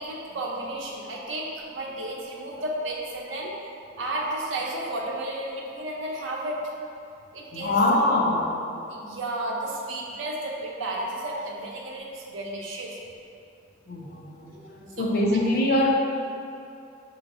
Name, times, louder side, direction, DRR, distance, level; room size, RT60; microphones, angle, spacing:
voice 1, 0.0-3.5 4.0-6.6 7.3-8.0 8.8-13.0 15.0-15.4, right 1 dB, 85° right, -2 dB, 0.7 m, -33 dB
voice 2, 7.5-8.6 13.9-15.9, left 1 dB, 50° left, -2 dB, 0.5 m, -24 dB
5.6 x 3.1 x 2.5 m, 2.6 s
head